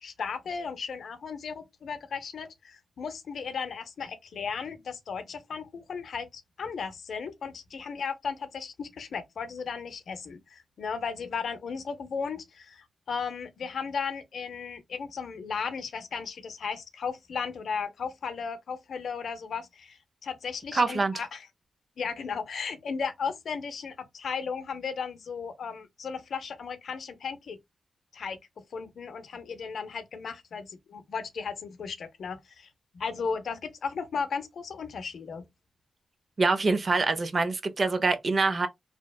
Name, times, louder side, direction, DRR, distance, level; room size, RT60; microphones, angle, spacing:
voice 1, 0.0-21.5 22.0-27.6 28.1-28.4 28.7-32.7 32.9-35.4, left 5 dB, 70° left, 0.5 m, -35 dB
voice 2, 20.7-21.2 36.4-38.7, right 3 dB, 40° right, 0.4 m, -25 dB
2.8 x 2.1 x 2.2 m
wide cardioid pair, 115°, 0 cm